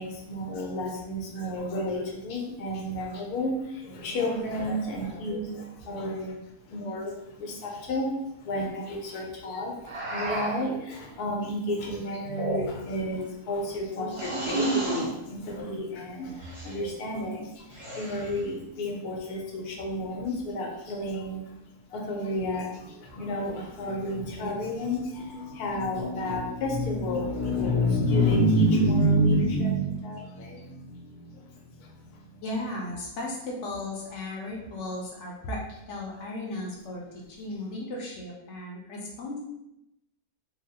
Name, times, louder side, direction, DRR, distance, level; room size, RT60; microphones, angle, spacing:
voice 1, 0.0-21.6 21.9-32.4, equal, 85° left, -1 dB, 1.2 m, -30 dB
sound 1, 9.8-10.7 12.2-13.0 14.1-15.1 16.4-16.8 17.7-18.4, right 2 dB, 30° right, 0.6 m, -31 dB
voice 2, 32.4-37.0 37.3-39.4, left 2 dB, 65° left, -2 dB, 0.8 m, -35 dB
3.8 x 2.0 x 2.7 m, 0.85 s
omnidirectional pair, 1.6 m